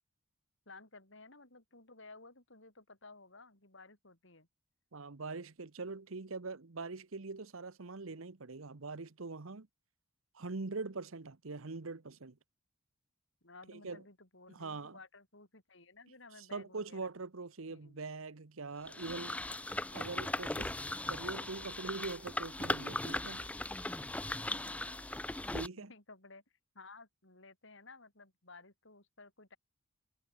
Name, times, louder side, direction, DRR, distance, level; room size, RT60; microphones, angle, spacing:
voice 1, 0.7-4.5 13.4-17.1 17.7-18.0 24.0-24.1 24.5-25.2 25.7-26.4 26.7-29.6, left 3 dB, 60° left, 6.2 m, -56 dB
voice 2, 4.9-9.7 10.3-12.4 13.8-14.0 14.5-15.0 16.4-19.4 19.9-20.7 21.1-23.5 25.5-25.9, right 3 dB, 75° right, 1.1 m, -43 dB
sound 1, 18.9-25.7, left 2 dB, 5° left, 0.4 m, -38 dB
head